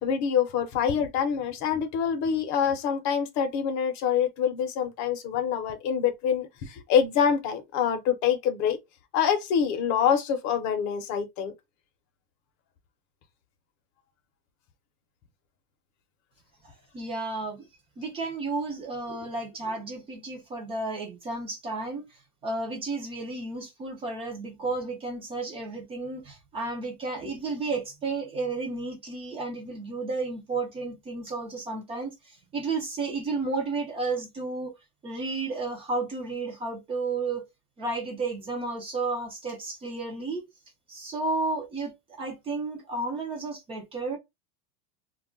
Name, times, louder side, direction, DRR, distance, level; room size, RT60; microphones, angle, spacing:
voice 1, 0.0-8.8 9.1-11.5 19.1-19.2, left 7 dB, 40° left, 0.6 m, -26 dB
voice 2, 16.6-17.7 18.0-34.7 35.0-37.4 37.8-40.4 40.9-44.2, right 3 dB, 15° right, 0.3 m, -32 dB
2.3 x 2.1 x 3.6 m
supercardioid pair, 145°, 45 cm